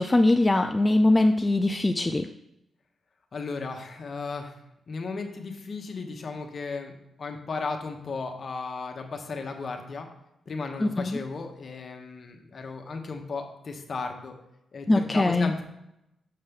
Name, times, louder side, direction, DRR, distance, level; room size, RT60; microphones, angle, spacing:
voice 1, 0.0-2.3 10.8-11.2 14.9-15.5, left 2 dB, 25° left, 6 dB, 0.3 m, -22 dB
voice 2, 3.3-4.5 4.9-10.1 10.5-14.3 14.7-15.6, left 4 dB, 55° left, 4 dB, 1.0 m, -35 dB
6.6 x 5.5 x 3.6 m, 0.84 s
cardioid pair, 70°, 0 cm